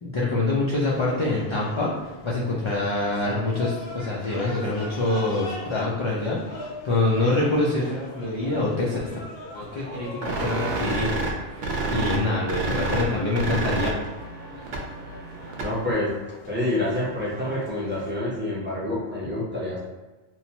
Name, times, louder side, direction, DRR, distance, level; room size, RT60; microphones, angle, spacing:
voice 1, 0.0-9.0 9.5-11.3 11.9-13.9, left 2 dB, 55° left, -6 dB, 0.3 m, -25 dB
sound 1, 0.8-18.1, left 1 dB, 70° left, 0.8 m, -42 dB
sound 2, 10.2-15.9, right 2 dB, 60° right, 0.6 m, -29 dB
voice 2, 15.6-16.1 16.5-19.8, left 1 dB, 10° right, -7 dB, 0.6 m, -27 dB
3.0 x 2.0 x 2.8 m, 1.2 s
omnidirectional pair, 1.1 m